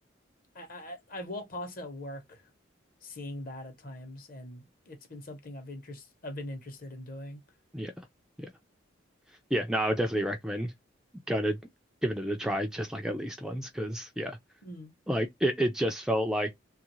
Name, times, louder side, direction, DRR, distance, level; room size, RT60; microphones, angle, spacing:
voice 1, 0.5-2.4 3.0-7.4 14.6-14.9, left 1 dB, 45° left, 0.9 m, -41 dB
voice 2, 9.5-10.7 11.3-11.6 12.0-14.4 15.1-16.6, equal, 5° right, 0.3 m, -30 dB
2.8 x 2.4 x 3.0 m
head